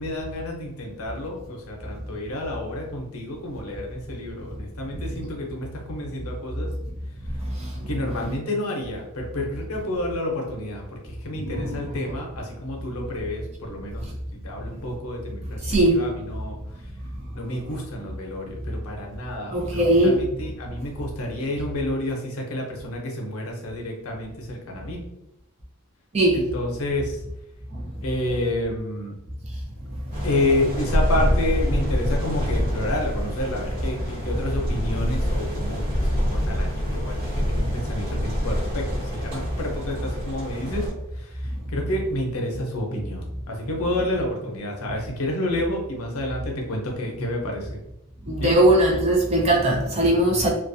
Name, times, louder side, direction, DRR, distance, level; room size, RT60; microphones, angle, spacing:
voice 1, 0.0-6.7 7.9-16.6 17.3-25.0 26.3-27.2 28.0-29.2 30.2-40.9 41.1-47.8 48.4-48.5, left 1 dB, 80° left, 0.6 m, -30 dB
voice 2, 11.4-11.7 15.7-16.0 19.5-20.2 26.1-26.4 48.3-50.5, right 1 dB, 30° right, 0.5 m, -19 dB
sound 1, 30.1-40.9, equal, 50° right, 1.3 m, -26 dB
2.3 x 2.2 x 2.6 m
head